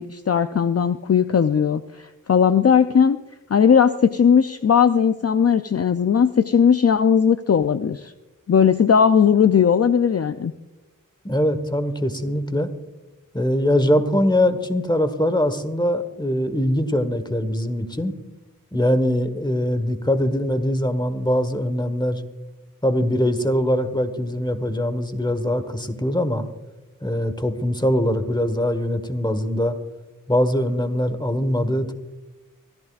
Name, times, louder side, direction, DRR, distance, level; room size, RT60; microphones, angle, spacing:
voice 1, 0.0-3.2 3.5-8.1 8.5-10.5, left 7 dB, 45° left, 10 dB, 0.4 m, -18 dB
voice 2, 11.2-12.7 13.3-18.1 18.7-22.2 22.8-26.5 27.0-29.8 30.3-31.9, equal, 15° left, 10 dB, 1.3 m, -22 dB
25.0 x 14.5 x 2.4 m, 1.1 s
wide cardioid pair, 60°, 34 cm